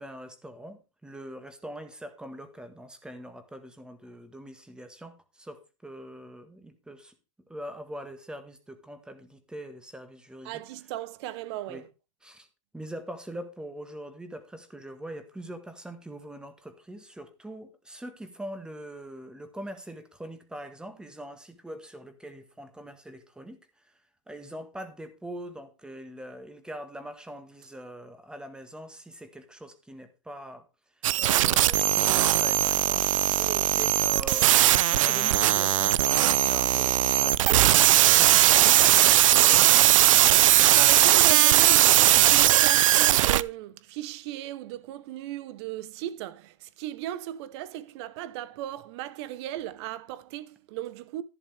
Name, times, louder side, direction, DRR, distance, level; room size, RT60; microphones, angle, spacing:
voice 1, 0.0-7.1 7.5-10.6 11.7-11.8 12.2-12.5 12.7-23.6 24.3-30.6 31.2-33.1 33.7-40.0, right 1 dB, 5° right, 1.6 m, -42 dB
voice 2, 10.4-11.9 33.4-33.7 40.4-51.2, right 13 dB, 55° right, 1.0 m, -37 dB
Audio glitching noise sample, 31.0-43.4, right 13 dB, 75° right, 0.5 m, -19 dB
11.5 x 10.5 x 3.5 m
hypercardioid pair, 130°, 17 cm